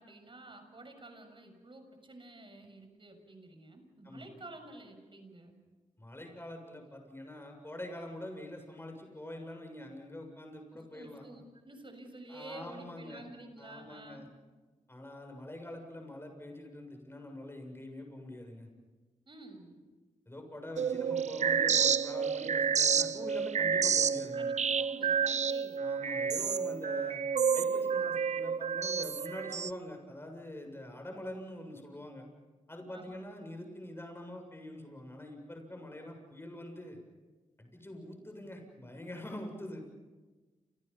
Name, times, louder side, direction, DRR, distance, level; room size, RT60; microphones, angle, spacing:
voice 1, 0.0-5.6 10.7-14.3 19.3-19.8 24.4-25.8 32.9-33.2, right 2 dB, 40° right, 6 dB, 6.8 m, -50 dB
voice 2, 6.0-11.3 12.3-13.2 13.6-14.3 14.9-18.7 20.3-24.5 25.8-27.2 27.5-32.3 32.7-37.0 37.6-39.8, left 1 dB, 20° left, 3 dB, 7.2 m, -45 dB
sound 1, 20.8-29.7, right 6 dB, 60° right, 0.7 m, -30 dB
29.5 x 28.5 x 5.7 m, 1.3 s
cardioid pair, 55°, 13 cm